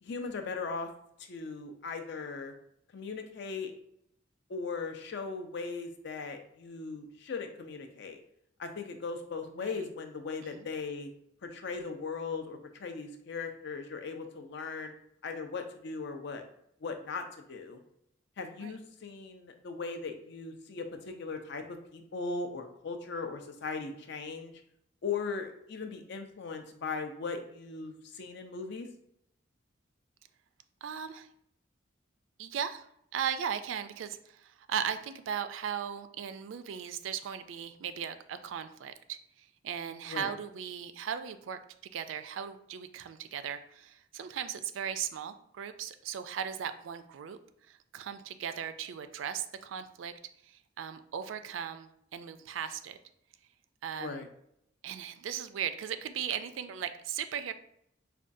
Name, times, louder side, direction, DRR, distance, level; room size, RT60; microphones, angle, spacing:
voice 1, 0.0-0.9 1.2-2.5 2.9-3.7 4.5-8.2 8.6-11.1 11.4-14.9 15.2-16.4 16.8-17.8 18.4-24.6 25.0-28.9 40.1-40.3 53.9-54.3, left 4 dB, 65° left, 5 dB, 0.5 m, -38 dB
voice 2, 30.8-31.3 32.4-32.9 33.1-41.6 41.9-47.4 47.7-50.1 50.4-53.0 53.8-54.2 54.8-57.5, right 8 dB, 90° right, 10 dB, 0.3 m, -37 dB
4.9 x 2.3 x 2.6 m, 0.74 s
head